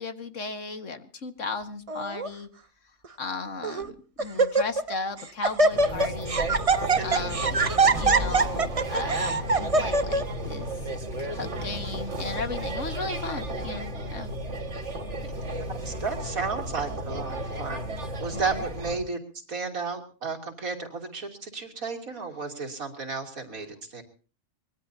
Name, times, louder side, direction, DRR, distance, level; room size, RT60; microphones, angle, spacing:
voice 1, 0.0-2.5 3.2-6.4 7.0-7.7 8.0-10.7 11.2-14.3 18.3-18.4, left 4 dB, 60° left, 8 dB, 2.0 m, -36 dB
Laughter, 1.9-2.3 3.0-3.1 3.6-3.9 4.2-4.9 5.2-10.2, right 3 dB, 30° right, 0.9 m, -23 dB
sound 1, 5.7-19.0, right 1 dB, 55° right, 2.1 m, -33 dB
voice 2, 7.0-7.3 15.2-15.3 15.8-17.8 18.2-19.2 19.5-24.0, right 4 dB, 80° right, 3 dB, 3.4 m, -33 dB
24.5 x 21.5 x 2.7 m, 0.39 s
omnidirectional pair, 1.4 m